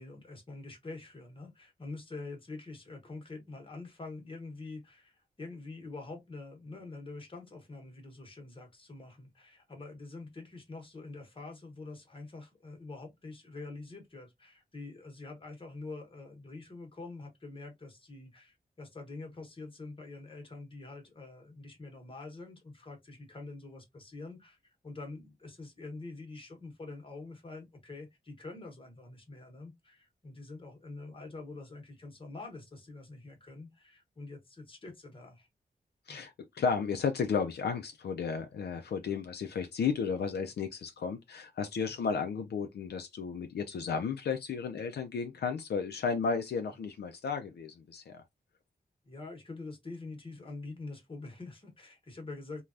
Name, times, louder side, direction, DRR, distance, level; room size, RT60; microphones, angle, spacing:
voice 1, 0.0-35.5 36.1-36.3 39.0-39.2 41.9-42.0 49.0-52.6, left 3 dB, 30° left, 1.0 m, -46 dB
voice 2, 36.1-48.2, left 5 dB, 80° left, 0.4 m, -33 dB
3.2 x 2.2 x 2.4 m
wide cardioid pair, 140°, 17 cm